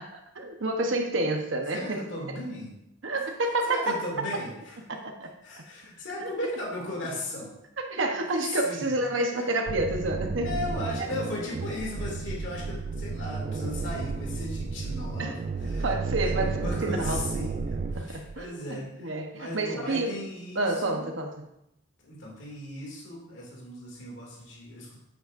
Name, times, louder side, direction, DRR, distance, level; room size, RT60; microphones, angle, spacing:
voice 1, 0.0-2.0 3.0-4.1 4.9-5.3 6.2-6.3 7.8-10.5 15.2-15.4 15.8-17.2 17.9-20.2 20.5-21.5, right 2 dB, 80° right, 3 dB, 1.0 m, -29 dB
voice 2, 1.7-2.7 3.1-3.2 3.7-4.8 5.4-7.6 8.2-8.9 9.3-9.5 10.4-21.1 22.0-25.0, left 1 dB, 70° left, -3 dB, 2.5 m, -37 dB
sound 1, 9.7-18.5, right 4 dB, 40° right, 0.3 m, -32 dB
9.0 x 7.9 x 2.6 m, 0.82 s
head